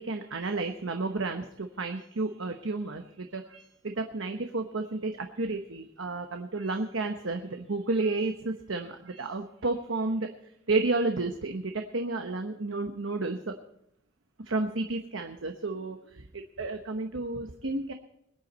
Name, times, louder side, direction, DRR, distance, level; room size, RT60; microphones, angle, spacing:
voice 1, 0.0-10.3 10.7-13.5 14.5-17.9, right 3 dB, 70° right, 5 dB, 1.0 m, -31 dB
22.0 x 9.7 x 4.2 m, 0.77 s
head